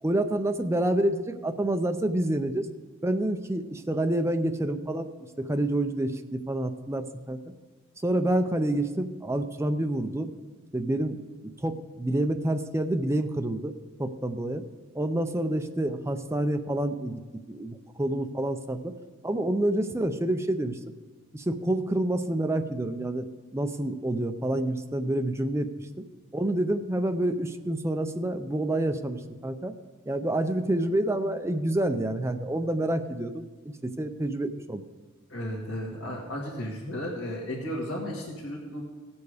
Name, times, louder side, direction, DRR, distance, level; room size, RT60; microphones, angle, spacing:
voice 1, 0.0-2.7 3.0-5.1 5.4-7.4 8.0-10.3 10.7-11.2 11.6-13.7 14.0-14.6 14.9-17.2 17.5-18.9 19.2-20.8 21.3-25.9 26.3-29.7 30.1-33.5 33.8-34.8, right 1 dB, 15° right, 8 dB, 0.5 m, -28 dB
voice 2, 35.3-38.8, equal, 60° left, -4 dB, 1.8 m, -34 dB
16.5 x 7.1 x 4.9 m, 1.3 s
head